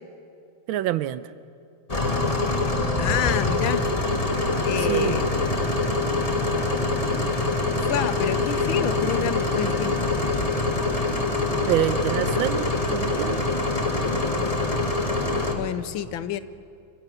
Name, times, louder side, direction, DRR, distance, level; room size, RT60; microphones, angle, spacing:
voice 1, 0.7-1.3 4.8-5.2 11.7-13.6, right 12 dB, 80° right, 15 dB, 1.5 m, -26 dB
sound 1, 1.9-15.5, left 2 dB, 20° left, 1.4 m, -24 dB
voice 2, 3.0-3.8 4.7-5.3 7.9-10.1 15.5-16.4, left 10 dB, 80° left, 14 dB, 1.6 m, -28 dB
26.0 x 16.0 x 8.4 m, 2.4 s
omnidirectional pair, 2.2 m